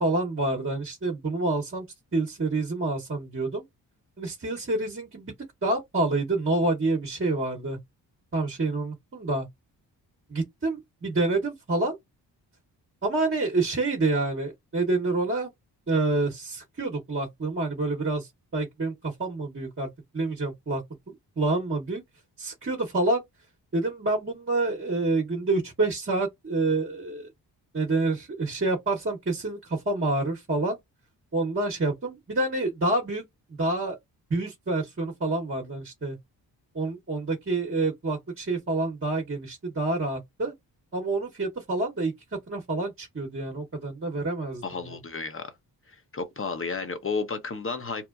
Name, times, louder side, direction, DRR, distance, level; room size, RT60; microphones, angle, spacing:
voice 1, 0.0-1.8 2.1-3.6 4.2-5.3 5.6-7.8 8.3-9.5 10.3-12.0 13.0-15.5 15.9-22.0 22.4-23.2 23.7-27.3 27.7-30.8 31.3-33.2 33.5-34.0 34.3-36.2 36.7-40.5 40.9-42.1 42.5-45.0, right 2 dB, 30° right, 1.0 m, -28 dB
voice 2, 44.6-45.5 46.1-48.1, left 4 dB, 30° left, 0.8 m, -32 dB
2.9 x 2.1 x 2.4 m
supercardioid pair, 45°, 45 cm